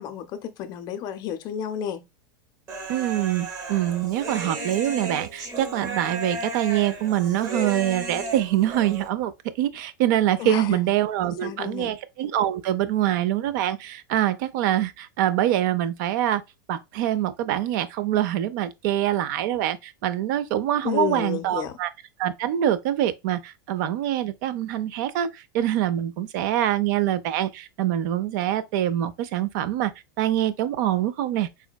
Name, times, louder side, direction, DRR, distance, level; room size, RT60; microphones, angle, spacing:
voice 1, 0.0-2.1 10.4-10.8 11.2-11.9 20.8-21.8, left 9 dB, 35° left, 0.5 m, -31 dB
Human voice, 2.7-9.1, right 3 dB, 30° right, 0.8 m, -34 dB
voice 2, 2.9-16.4 16.7-21.9 22.2-29.9 30.2-31.5, right 12 dB, 60° right, 0.4 m, -25 dB
3.6 x 2.1 x 2.3 m
supercardioid pair, 130°, 11 cm